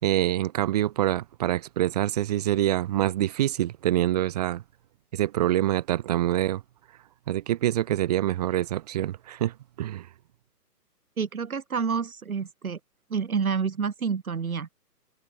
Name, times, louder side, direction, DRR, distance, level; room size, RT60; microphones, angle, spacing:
voice 1, 0.0-4.6 5.1-6.6 7.3-10.1, right 13 dB, 25° right, 5.5 m, -25 dB
voice 2, 11.2-12.8 13.1-14.7, right 6 dB, 60° right, 4.4 m, -28 dB
open air
hypercardioid pair, 170°, 49 cm